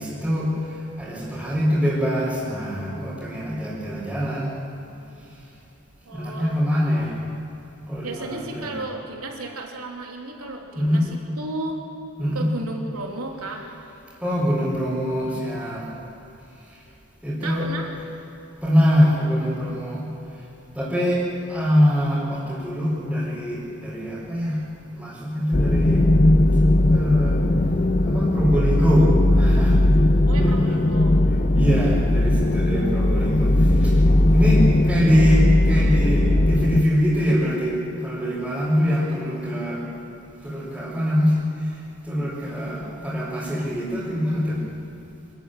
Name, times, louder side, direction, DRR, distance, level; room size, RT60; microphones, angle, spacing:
voice 1, 0.0-4.5 5.3-5.4 6.1-7.2 7.9-8.8 10.7-11.1 12.2-12.5 14.2-15.9 16.6-16.8 17.2-18.0 18.6-20.1 20.3-20.4 20.7-24.6 24.9-26.1 26.9-27.4 28.0-29.8 30.3-30.8 31.3-34.1 34.3-39.8 40.4-44.6, equal, 5° right, -11 dB, 4.5 m, -23 dB
voice 2, 6.0-6.6 8.0-11.8 12.3-13.6 17.4-17.9 30.3-31.1, right 2 dB, 80° right, 0 dB, 3.1 m, -33 dB
sound 1, 25.5-36.8, left 1 dB, 35° left, 0.6 m, -18 dB
26.0 x 13.5 x 9.1 m, 2.9 s
head